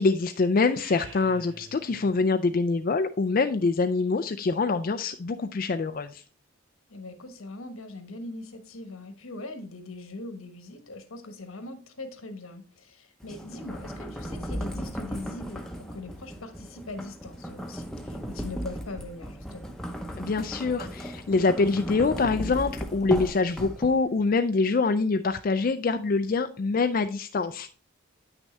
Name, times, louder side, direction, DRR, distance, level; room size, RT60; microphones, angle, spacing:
voice 1, 0.0-6.2 20.2-27.7, left 4 dB, 40° left, 7 dB, 0.3 m, -25 dB
sound 1, 0.6-2.2, right 2 dB, 70° right, 2.3 m, -47 dB
voice 2, 6.9-19.8, left 2 dB, 80° left, 8 dB, 1.2 m, -41 dB
sound 2, 13.2-24.2, equal, 5° left, 0.7 m, -36 dB
9.2 x 6.2 x 3.2 m, 0.39 s
head